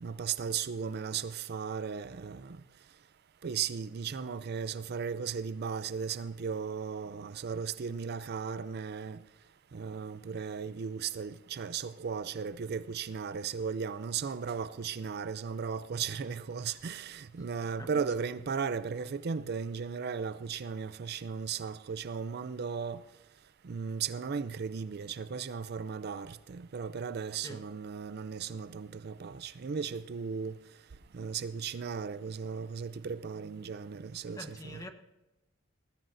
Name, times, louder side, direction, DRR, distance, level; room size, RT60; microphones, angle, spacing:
voice 1, 0.0-2.6 3.4-9.2 9.7-23.0 23.6-30.5 31.1-34.8, right 6 dB, 50° right, 0.4 m, -36 dB
voice 2, 34.3-34.9, left 1 dB, 15° left, 1.2 m, -44 dB
20.0 x 14.5 x 2.6 m
head